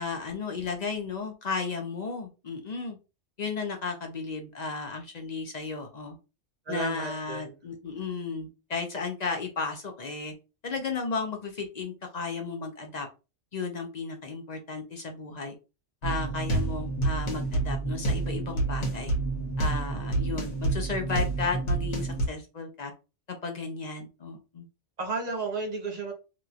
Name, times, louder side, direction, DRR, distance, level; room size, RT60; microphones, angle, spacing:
voice 1, 0.0-3.0 3.4-6.2 6.7-10.3 10.6-13.1 13.5-15.6 16.0-19.1 19.6-22.9 23.3-24.7, left 4 dB, 55° left, 4 dB, 0.5 m, -34 dB
voice 2, 6.7-7.6 25.0-26.1, right 3 dB, 40° right, 1 dB, 0.8 m, -33 dB
sound 1, 16.0-22.3, right 2 dB, 80° left, 1.3 m, -29 dB
2.9 x 2.9 x 2.4 m, 0.30 s
omnidirectional pair, 1.2 m